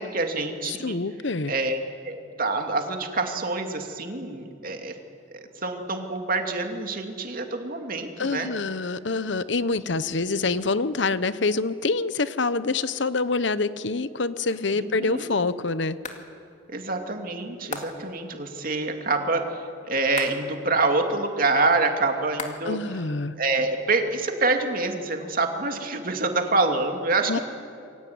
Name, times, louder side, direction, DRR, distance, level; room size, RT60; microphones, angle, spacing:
voice 1, 0.0-1.0 1.5-1.8 2.0-4.9 5.3-8.5 14.7-15.3 16.7-19.4 19.8-22.8 23.4-27.4, right 3 dB, 45° right, 4 dB, 2.7 m, -26 dB
voice 2, 0.6-1.5 8.2-16.0 22.7-23.3 27.3-27.4, left 3 dB, 65° left, 14 dB, 0.9 m, -26 dB
sound 1, 14.5-14.9 16.0-16.3 17.7-18.2 20.2-20.6 22.4-22.9 23.1-24.1, left 4 dB, 40° left, 2.4 m, -38 dB
27.5 x 22.5 x 9.5 m, 2.5 s
head